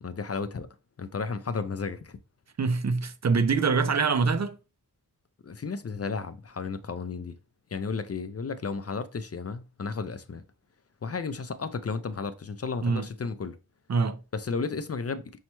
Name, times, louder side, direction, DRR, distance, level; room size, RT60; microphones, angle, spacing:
voice 1, 0.0-0.7 1.0-2.2 5.4-7.4 7.7-10.4 11.0-13.6 14.3-15.2, left 4 dB, 40° left, 0.4 m, -33 dB
voice 2, 2.6-4.6 12.8-13.1 13.9-14.2, right 4 dB, 45° right, 0.4 m, -24 dB
5.5 x 2.1 x 3.0 m
wide cardioid pair, 45°, 39 cm